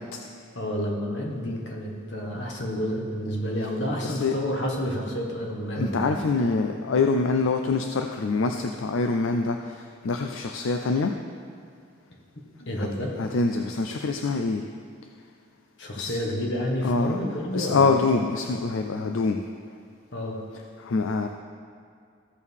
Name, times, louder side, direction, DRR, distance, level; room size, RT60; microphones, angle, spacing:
voice 1, 0.5-6.4 12.7-13.2 15.8-18.0 20.1-20.4, equal, 60° left, -1 dB, 1.5 m, -30 dB
voice 2, 4.0-4.4 5.8-11.1 12.8-12.9 13.2-14.6 16.0-16.2 16.8-17.2 17.5-19.4 20.8-21.3, left 4 dB, 80° left, 5 dB, 0.4 m, -25 dB
14.5 x 6.3 x 3.6 m, 2.3 s
head